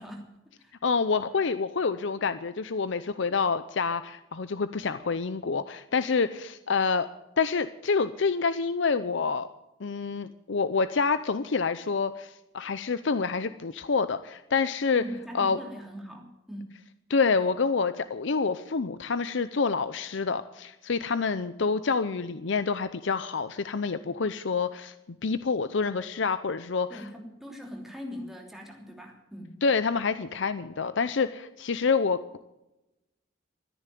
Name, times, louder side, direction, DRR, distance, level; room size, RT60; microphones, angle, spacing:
voice 1, 0.0-0.7 14.9-16.7 26.9-29.5, equal, ahead, 0 dB, 3.1 m, -41 dB
voice 2, 0.8-7.1 7.4-9.5 9.8-15.0 15.3-15.6 17.1-27.1 29.6-32.4, left 5 dB, 65° left, 13 dB, 0.6 m, -27 dB
14.0 x 10.0 x 9.1 m, 0.93 s
head